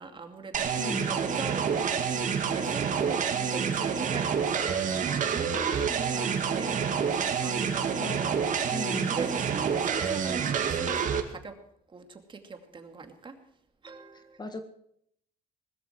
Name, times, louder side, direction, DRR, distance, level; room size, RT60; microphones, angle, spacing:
voice 1, 0.0-11.6 11.9-13.4 13.8-14.4, right 4 dB, 30° right, 6 dB, 2.5 m, -41 dB
sound 1, 0.5-11.2, right 7 dB, 50° right, 2.2 m, -28 dB
voice 2, 0.7-1.1 8.0-9.1 14.4-14.7, left 2 dB, 25° left, 8 dB, 1.7 m, -38 dB
20.0 x 13.5 x 4.6 m, 0.69 s
cardioid pair, 110°, 17 cm